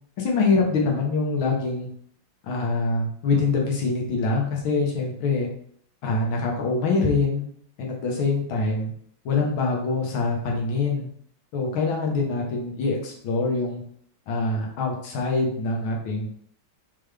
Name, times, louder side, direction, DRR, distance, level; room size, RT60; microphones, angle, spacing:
voice 1, 0.2-1.9 2.4-5.5 6.0-7.4 7.8-8.9 9.3-11.1 11.5-13.8 14.3-16.3, left 3 dB, 75° left, -1 dB, 1.8 m, -24 dB
4.0 x 3.9 x 3.3 m, 0.63 s
omnidirectional pair, 2.3 m